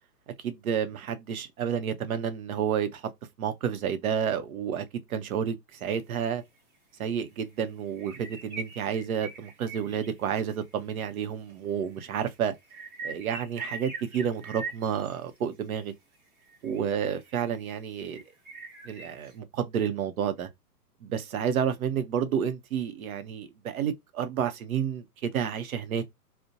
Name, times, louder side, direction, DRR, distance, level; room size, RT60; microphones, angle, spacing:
voice 1, 0.4-3.1 3.4-4.8 5.1-6.4 7.0-12.5 13.0-15.9 16.6-18.2 18.8-20.5 21.0-26.0, right 8 dB, 55° right, 0.6 m, -30 dB
sound 1, 5.8-5.9 6.3-6.4 7.0-7.2 7.5-7.6 7.9-10.6 11.5-11.6 11.8-15.4 16.1-17.6 18.1-19.4, right 4 dB, 30° right, 0.8 m, -42 dB
2.5 x 2.1 x 2.6 m
hypercardioid pair, 150°, 50 cm